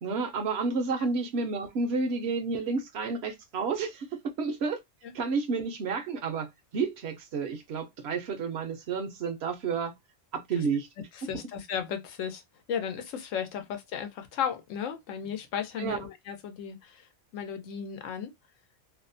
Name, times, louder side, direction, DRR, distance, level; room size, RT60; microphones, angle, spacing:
voice 1, 0.0-4.1 4.4-4.8 5.1-9.9 10.3-10.9 15.8-16.0, right 4 dB, 65° right, 0.8 m, -30 dB
voice 2, 11.1-12.4 12.7-17.0 17.3-18.3, left 8 dB, 90° left, 1.0 m, -35 dB
2.7 x 2.1 x 2.5 m
omnidirectional pair, 1.3 m